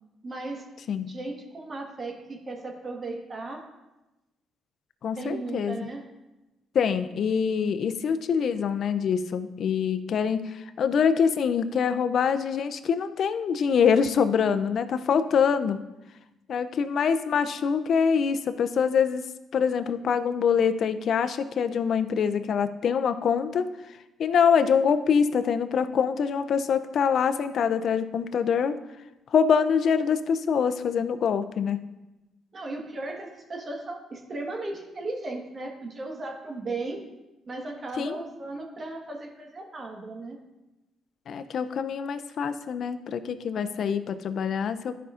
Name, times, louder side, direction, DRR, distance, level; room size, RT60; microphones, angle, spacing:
voice 1, 0.2-0.6 1.0-3.6 5.2-6.0 32.5-37.0 37.5-40.4, right 2 dB, 40° right, 2 dB, 1.3 m, -36 dB
voice 2, 5.0-5.9 6.7-15.8 16.5-19.2 19.5-23.7 24.2-28.8 29.3-31.8 38.0-38.2 41.3-44.9, left 6 dB, 60° left, 11 dB, 0.4 m, -25 dB
11.5 x 5.4 x 2.5 m, 1.0 s
cardioid pair, 90°, 0 cm